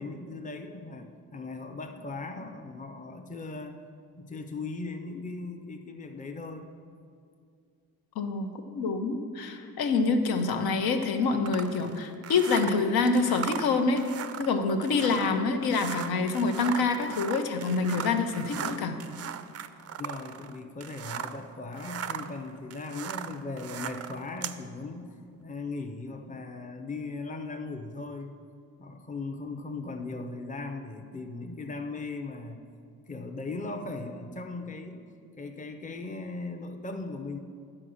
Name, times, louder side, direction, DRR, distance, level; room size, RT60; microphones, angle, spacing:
voice 1, 0.0-3.8 4.2-6.7 20.0-25.2 25.4-28.4 28.8-32.6 33.1-35.0 35.4-37.4, left 3 dB, 20° left, 5 dB, 0.7 m, -38 dB
voice 2, 8.2-19.0, left 4 dB, 70° left, 6 dB, 0.9 m, -26 dB
sound 1, 11.5-21.4 21.7-24.6, right 9 dB, 40° right, 0.4 m, -38 dB
9.9 x 4.8 x 6.3 m, 2.3 s
cardioid pair, 85°, 38 cm